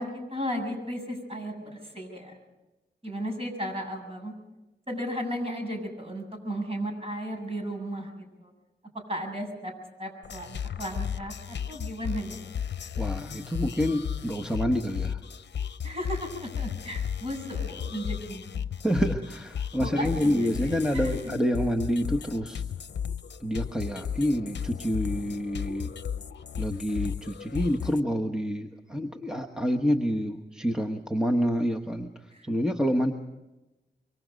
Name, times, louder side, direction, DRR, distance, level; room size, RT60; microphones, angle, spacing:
voice 1, 0.0-2.4 3.0-4.3 4.9-8.5 9.1-9.7 10.0-12.4 15.8-18.6 19.8-21.3 32.3-32.5, equal, 30° right, 3 dB, 7.4 m, -35 dB
sound 1, 10.2-28.0, left 8 dB, 75° left, 0.7 m, -34 dB
voice 2, 13.0-15.2 18.8-22.6 23.4-25.9 26.6-33.1, equal, 5° right, 4 dB, 1.2 m, -28 dB
25.5 x 24.0 x 5.2 m, 1.0 s
wide cardioid pair, 100°, 18 cm